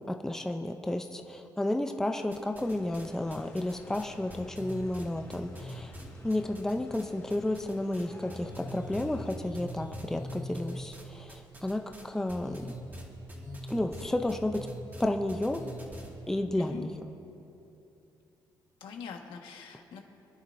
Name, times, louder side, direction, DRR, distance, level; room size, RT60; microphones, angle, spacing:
voice 1, 0.0-5.9 6.2-12.7 13.7-14.7 15.0-15.6 16.3-16.9, left 1 dB, 5° left, 5 dB, 0.6 m, -32 dB
sound 1, 2.3-3.0 3.3-7.0 7.3-8.0 8.3-16.1, equal, 20° right, 2.2 m, -42 dB
sound 2, 2.6-9.3, left 2 dB, 30° left, 2.7 m, -51 dB
voice 2, 4.4-4.8 16.6-16.9 18.8-20.0, left 6 dB, 85° left, 2 dB, 1.6 m, -44 dB
28.5 x 10.5 x 2.7 m, 2.9 s
cardioid pair, 130°, 8 cm